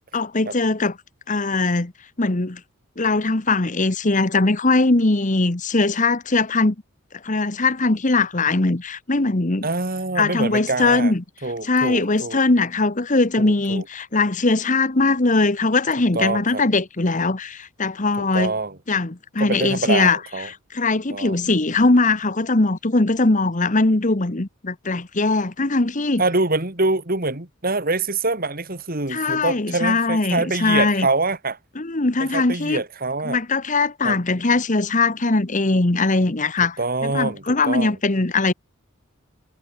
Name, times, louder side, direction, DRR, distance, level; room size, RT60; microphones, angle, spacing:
voice 1, 0.1-1.0 1.3-1.9 2.2-2.6 3.0-6.7 7.2-9.7 10.2-11.2 11.6-18.5 18.9-20.2 20.4-26.2 29.1-31.1 31.8-32.8 33.2-38.5, left 3 dB, 35° left, 1.2 m, -20 dB
voice 2, 9.6-11.1 11.4-12.4 13.4-13.8 16.1-16.6 18.2-18.8 19.4-20.5 21.1-21.4 26.2-31.6 32.2-33.4 34.0-34.2 36.8-38.0, right 3 dB, 40° right, 2.7 m, -25 dB
head